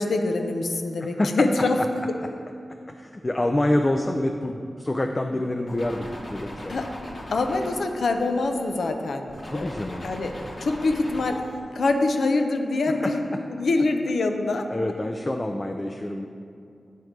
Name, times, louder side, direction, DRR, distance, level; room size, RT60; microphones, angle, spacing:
voice 1, 0.0-1.8 6.7-6.9 7.3-9.7 10.0-10.3 10.6-11.4 11.8-13.2 13.5-14.7, left 3 dB, 80° left, 5 dB, 0.5 m, -24 dB
voice 2, 1.0-1.7 2.9-6.8 9.4-10.1 12.9-13.4 14.7-16.3, left 1 dB, 25° left, 4 dB, 0.3 m, -27 dB
sound 1, 5.7-8.9 9.3-11.6, left 1 dB, 50° left, 1.0 m, -39 dB
9.2 x 3.1 x 5.0 m, 2.4 s
wide cardioid pair, 100°, 0 cm